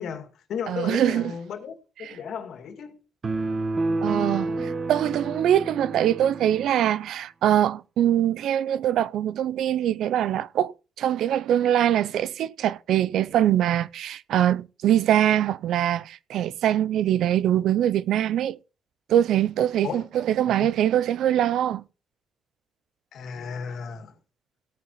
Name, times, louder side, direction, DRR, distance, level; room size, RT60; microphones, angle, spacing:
voice 1, 0.0-3.0 19.8-20.1 20.5-20.7 23.1-24.1, left 7 dB, 75° left, 2.1 m, -35 dB
voice 2, 0.7-1.3 2.0-2.2 4.0-18.6 19.1-21.8, right 11 dB, 75° right, 0.4 m, -23 dB
sound 1, 3.2-6.8, right 2 dB, 35° right, 1.2 m, -29 dB
17.5 x 9.0 x 3.0 m
cardioid pair, 90°, 0 cm